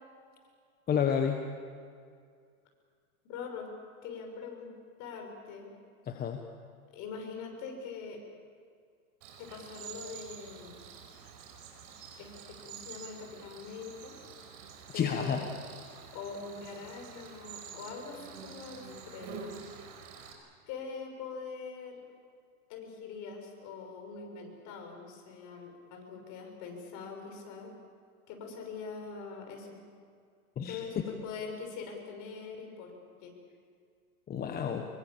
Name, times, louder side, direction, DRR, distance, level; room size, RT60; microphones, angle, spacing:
voice 1, 0.9-1.4 6.0-6.4 14.9-15.4 30.6-31.0 34.3-34.9, left 7 dB, 20° left, 4 dB, 1.4 m, -30 dB
voice 2, 3.2-3.7 4.0-4.7 5.0-5.7 6.9-8.2 9.4-10.8 12.2-14.1 14.9-15.5 16.1-19.5 20.7-22.0 22.7-27.7 28.3-29.8 30.7-32.9 33.2-33.3, left 5 dB, 40° left, 2 dB, 6.4 m, -43 dB
Cricket, 9.2-20.3, right 6 dB, 45° right, 5.2 m, -48 dB
25.5 x 23.0 x 7.4 m, 2.2 s
hypercardioid pair, 135°, 44 cm